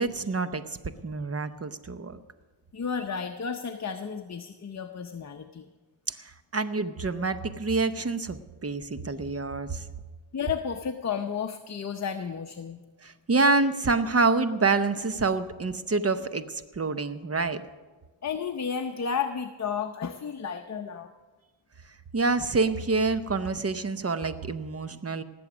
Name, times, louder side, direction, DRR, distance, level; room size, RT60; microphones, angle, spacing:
voice 1, 0.0-2.2 6.1-9.9 13.0-17.6 22.1-25.2, right 3 dB, 30° right, 11 dB, 0.8 m, -27 dB
voice 2, 2.7-5.7 10.3-12.8 18.2-21.1, left 6 dB, 35° left, 5 dB, 0.7 m, -32 dB
19.0 x 7.9 x 6.1 m, 1.3 s
wide cardioid pair, 90°, 46 cm